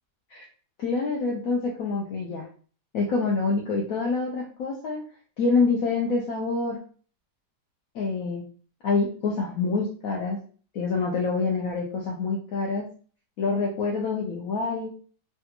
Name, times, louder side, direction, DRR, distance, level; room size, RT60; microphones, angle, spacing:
voice 1, 0.8-2.5 2.9-5.0 5.4-6.8 7.9-8.4 8.8-10.4 10.7-12.8 13.4-14.9, left 4 dB, 65° left, -1 dB, 0.9 m, -26 dB
3.3 x 2.4 x 2.8 m, 0.42 s
omnidirectional pair, 1.8 m